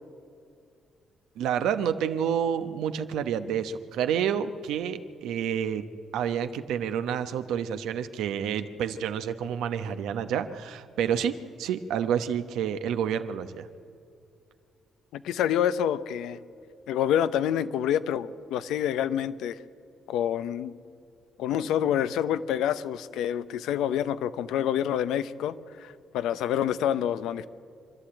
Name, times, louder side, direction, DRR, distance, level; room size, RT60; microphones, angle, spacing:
voice 1, 1.4-13.7, right 8 dB, 85° right, 9 dB, 1.0 m, -29 dB
voice 2, 15.1-16.4 16.9-19.6 20.1-20.7 21.4-27.5, left 10 dB, 85° left, 13 dB, 0.7 m, -27 dB
26.0 x 11.5 x 8.9 m, 2.5 s
cardioid pair, 90°, 0 cm